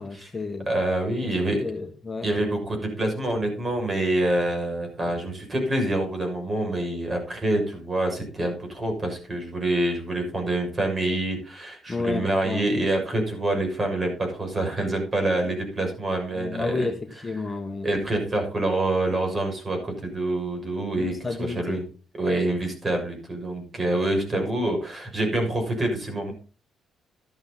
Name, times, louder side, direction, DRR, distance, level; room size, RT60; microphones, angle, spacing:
voice 1, 0.0-0.7 1.2-2.3 11.9-12.7 16.3-17.9 21.0-21.9 24.3-24.5, left 3 dB, 20° left, 1.6 m, -31 dB
voice 2, 0.7-1.6 2.2-16.9 17.8-21.8 22.2-26.3, right 1 dB, 35° right, 6.4 m, -26 dB
12.5 x 11.0 x 4.1 m
cardioid pair, 90°, 0 cm